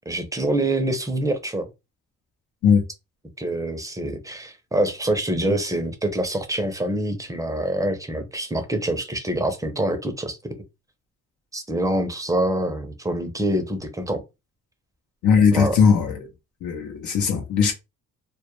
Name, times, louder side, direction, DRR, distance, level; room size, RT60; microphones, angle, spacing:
voice 1, 0.1-1.7 3.4-10.5 11.5-14.2 15.5-15.8, right 1 dB, 10° right, 0.5 m, -25 dB
voice 2, 15.2-16.3 16.6-17.7, left 6 dB, 75° left, 0.7 m, -19 dB
2.2 x 2.0 x 2.9 m
cardioid pair, 90°, 30 cm